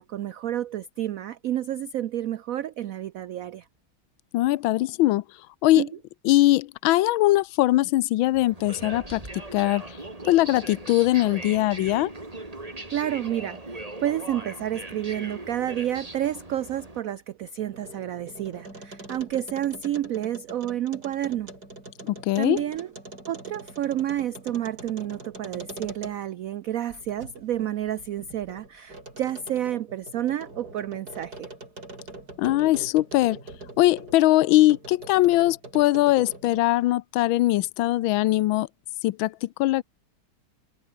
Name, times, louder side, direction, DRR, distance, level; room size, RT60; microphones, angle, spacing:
voice 1, 0.0-3.6 5.8-5.9 12.9-21.5 22.4-22.9 23.3-31.5, right 11 dB, 80° right, 0.7 m, -30 dB
voice 2, 4.3-5.2 5.6-5.8 6.2-9.2 9.5-10.0 10.2-12.1 22.0-22.6 32.4-33.4 33.8-38.7 39.0-39.8, left 16 dB, 85° left, 1.4 m, -21 dB
sound 1, 8.3-17.0, right 2 dB, 20° right, 2.8 m, -39 dB
sound 2, 17.6-26.4 26.9-34.2 34.7-36.8, right 2 dB, 50° right, 7.5 m, -43 dB
omnidirectional pair, 2.1 m